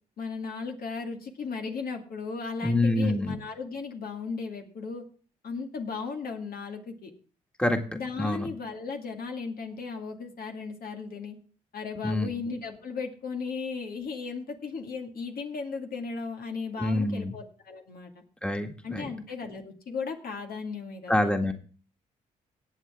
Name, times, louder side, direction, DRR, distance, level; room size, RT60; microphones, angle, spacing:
voice 1, 0.2-5.0 5.4-7.1 7.9-11.4 11.7-18.1 18.8-21.4, left 4 dB, 60° left, 3 dB, 2.2 m, -36 dB
voice 2, 2.6-3.4 7.6-7.8 8.2-8.5 12.0-12.3 16.8-17.3 18.4-19.1 21.1-21.5, left 1 dB, 5° left, 5 dB, 1.9 m, -26 dB
18.0 x 7.8 x 3.6 m, 0.40 s
hypercardioid pair, 50°, 17 cm